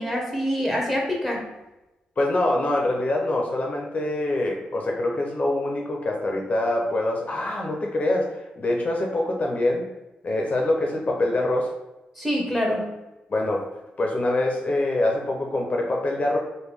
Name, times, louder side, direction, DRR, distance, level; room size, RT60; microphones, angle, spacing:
voice 1, 0.0-1.5 12.2-12.9, equal, 5° right, -1 dB, 1.0 m, -25 dB
voice 2, 2.2-9.9 10.2-11.7 13.3-13.6 14.0-16.4, left 2 dB, 40° left, 0 dB, 0.6 m, -24 dB
3.4 x 2.2 x 3.4 m, 1.0 s
cardioid pair, 60°, 4 cm